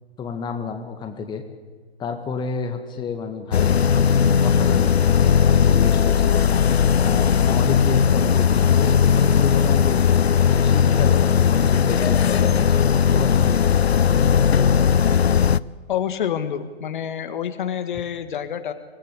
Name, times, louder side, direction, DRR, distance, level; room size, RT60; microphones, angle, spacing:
voice 1, 0.2-1.4 2.0-6.5 7.0-10.1 10.5-13.7, left 6 dB, 15° left, 5 dB, 2.0 m, -30 dB
sound 1, 3.5-15.6, left 7 dB, 70° left, 0.7 m, -17 dB
voice 2, 15.9-18.7, left 9 dB, 50° left, 9 dB, 1.9 m, -27 dB
24.5 x 18.5 x 8.3 m, 1.5 s
figure-of-eight pair, 120°, 32 cm